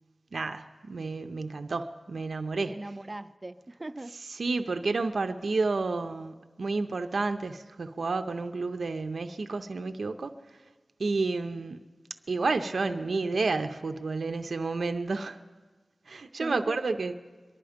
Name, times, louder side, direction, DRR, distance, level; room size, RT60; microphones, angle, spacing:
voice 1, 0.3-2.7 4.4-10.3 11.0-11.8 12.3-15.4 16.1-17.1, right 3 dB, 80° right, 0.5 m, -30 dB
voice 2, 2.7-4.2 16.4-17.0, right 2 dB, 35° right, 0.5 m, -40 dB
23.0 x 11.5 x 5.0 m
wide cardioid pair, 55°, 0 cm